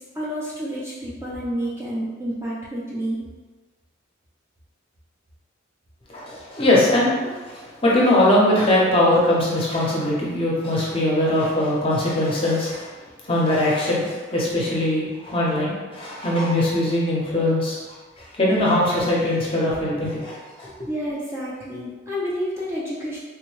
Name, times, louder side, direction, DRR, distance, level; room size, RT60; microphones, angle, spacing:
voice 1, 0.2-3.2 20.9-23.2, equal, 15° right, -7 dB, 0.4 m, -29 dB
voice 2, 6.1-12.9 13.3-17.8 18.2-20.7, left 1 dB, 30° left, -5 dB, 0.6 m, -21 dB
3.5 x 2.1 x 3.1 m, 1.3 s
head